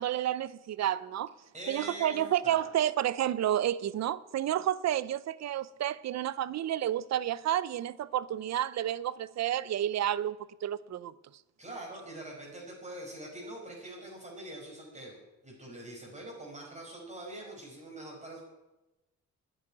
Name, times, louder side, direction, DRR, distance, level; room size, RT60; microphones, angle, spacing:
voice 1, 0.0-1.3 1.7-11.2, right 11 dB, 60° right, 0.7 m, -30 dB
voice 2, 1.5-2.2 2.4-2.6 11.6-18.4, right 1 dB, 25° right, 5.1 m, -44 dB
10.0 x 9.1 x 10.0 m
cardioid pair, 90°, 30 cm